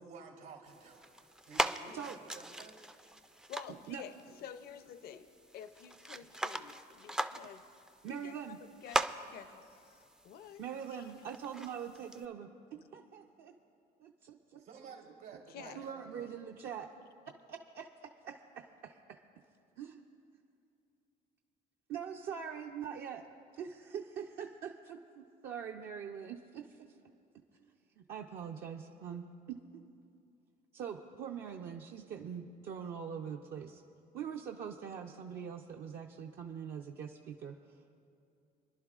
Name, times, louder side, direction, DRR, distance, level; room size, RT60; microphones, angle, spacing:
voice 1, 0.0-2.7 14.6-16.3, right 5 dB, 85° right, 1 dB, 2.9 m, -52 dB
sound 1, 0.7-12.3, right 1 dB, 5° right, 0.3 m, -41 dB
voice 2, 3.5-7.6 8.1-8.6 8.8-11.1 11.6-11.7 15.5-15.8, left 8 dB, 65° left, 11 dB, 0.5 m, -50 dB
voice 3, 8.0-8.6 10.6-12.5 12.9-13.5 14.0-14.6 15.7-16.9 17.5-19.2 19.8-20.0 20.3-20.4 21.9-23.2 23.5-26.9 28.0-29.8 30.7-33.8 34.1-37.5, right 7 dB, 70° right, 1 dB, 0.6 m, -43 dB
28.5 x 11.0 x 2.4 m, 2.5 s
cardioid pair, 110°, 17 cm